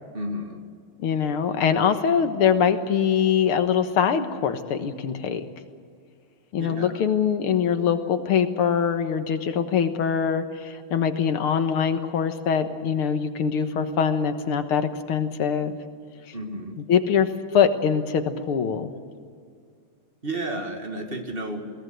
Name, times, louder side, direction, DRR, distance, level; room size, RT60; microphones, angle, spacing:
voice 1, 0.1-0.6 6.6-7.0 16.3-16.8 20.2-21.6, right 1 dB, 25° right, 4 dB, 2.1 m, -32 dB
voice 2, 1.0-5.4 6.5-15.8 16.9-18.9, left 7 dB, 85° left, 8 dB, 2.3 m, -23 dB
21.5 x 18.5 x 7.8 m, 2.1 s
omnidirectional pair, 2.3 m